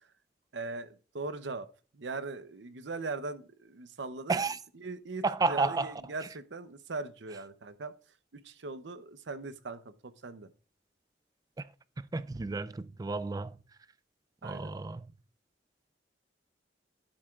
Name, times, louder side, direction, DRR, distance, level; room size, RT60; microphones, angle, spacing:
voice 1, 0.5-1.7 1.9-4.4 4.8-7.9 8.3-10.5 14.4-14.7, right 3 dB, 80° right, 0.7 m, -40 dB
voice 2, 5.2-5.9 11.6-11.7 12.1-13.6 14.4-15.1, right 3 dB, 20° right, 0.3 m, -31 dB
11.0 x 7.6 x 2.4 m
head